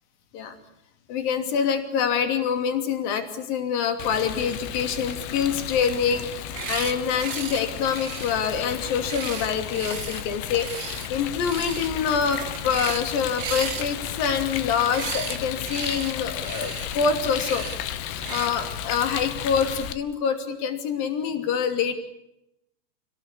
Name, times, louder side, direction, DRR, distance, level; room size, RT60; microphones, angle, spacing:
voice 1, 1.1-17.7 18.3-21.9, left 7 dB, 50° left, 7 dB, 4.2 m, -26 dB
Rain, 4.0-19.9, left 10 dB, 75° left, 3.6 m, -34 dB
sound 1, 6.4-6.9 7.2-7.6 7.9-10.2 10.6-11.1 11.4-11.9 12.2-13.1 13.4-15.4 15.6-16.1 16.4-16.9 17.3-17.8 18.2-18.5, right 8 dB, 75° right, 1.4 m, -35 dB
29.5 x 18.0 x 8.5 m, 0.84 s
omnidirectional pair, 5.8 m